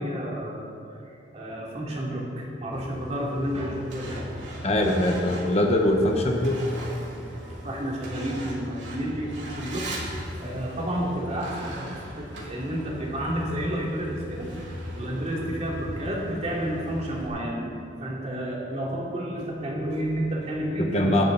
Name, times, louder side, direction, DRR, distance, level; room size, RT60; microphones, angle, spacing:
voice 1, 0.0-4.3 7.6-17.7 18.0-21.3, equal, 35° right, -3 dB, 2.7 m, -31 dB
Truck, 2.7-17.3, equal, 90° right, 2.9 m, -38 dB
voice 2, 4.6-6.6 20.8-21.2, left 1 dB, 35° left, 2 dB, 1.1 m, -22 dB
16.5 x 11.5 x 4.0 m, 2.7 s
head